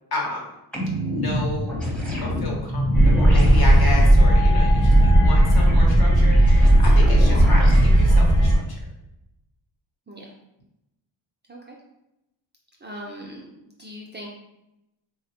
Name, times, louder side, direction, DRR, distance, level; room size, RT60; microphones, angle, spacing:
voice 1, 0.1-0.4 1.1-1.8 2.2-8.6, left 2 dB, 55° left, -1 dB, 0.9 m, -32 dB
sound 1, 0.7-8.2, left 1 dB, ahead, 0.7 m, -27 dB
sound 2, 2.9-8.6, right 1 dB, 25° left, 0.9 m, -15 dB
voice 2, 12.8-13.5 13.8-14.3, equal, 25° right, -2 dB, 0.3 m, -39 dB
3.3 x 2.0 x 2.8 m, 0.88 s
cardioid pair, 90°, 46 cm